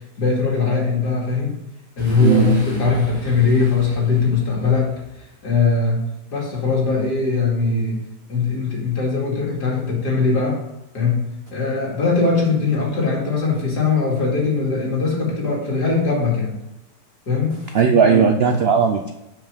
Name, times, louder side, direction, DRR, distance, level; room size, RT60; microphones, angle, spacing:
voice 1, 0.2-1.6 2.0-6.0 6.3-8.0 8.3-10.6 10.9-11.2 11.5-16.6 17.3-17.6 18.1-18.3, left 4 dB, 70° left, -3 dB, 3.0 m, -20 dB
Boom, 2.0-5.6, right 1 dB, 15° left, 2.5 m, -40 dB
voice 2, 2.2-2.9 17.7-19.1, right 6 dB, 70° right, 6 dB, 0.5 m, -17 dB
7.3 x 6.2 x 5.0 m, 0.93 s
omnidirectional pair, 1.8 m